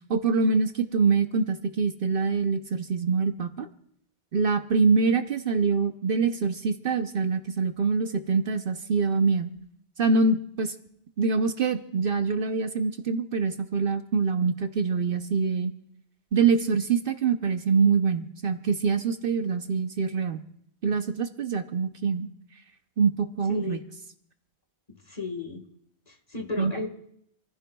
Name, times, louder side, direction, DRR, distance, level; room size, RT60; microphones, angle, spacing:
voice 1, 0.1-3.7 4.3-9.5 10.0-10.7 11.2-15.7 16.3-20.4 20.8-22.3 23.0-23.8 26.6-26.7, right 5 dB, 60° right, 8 dB, 0.9 m, -25 dB
voice 2, 23.5-23.8 25.1-25.6 26.1-26.9, left 3 dB, 35° left, 4 dB, 1.6 m, -34 dB
28.0 x 15.0 x 2.3 m, 0.70 s
omnidirectional pair, 1.1 m